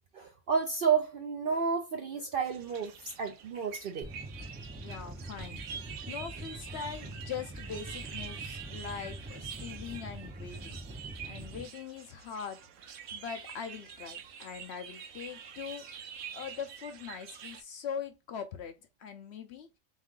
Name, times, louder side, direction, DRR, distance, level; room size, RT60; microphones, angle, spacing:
voice 1, 0.1-4.1, right 6 dB, 65° right, 0.6 m, -31 dB
sound 1, 2.4-17.6, right 7 dB, 85° right, 1.1 m, -46 dB
sound 2, 4.0-11.6, right 1 dB, 15° right, 0.4 m, -44 dB
voice 2, 4.8-5.6 6.1-10.8 11.3-12.6 13.1-15.8 16.3-19.7, left 7 dB, 65° left, 0.7 m, -42 dB
3.6 x 3.2 x 3.7 m
omnidirectional pair, 1.4 m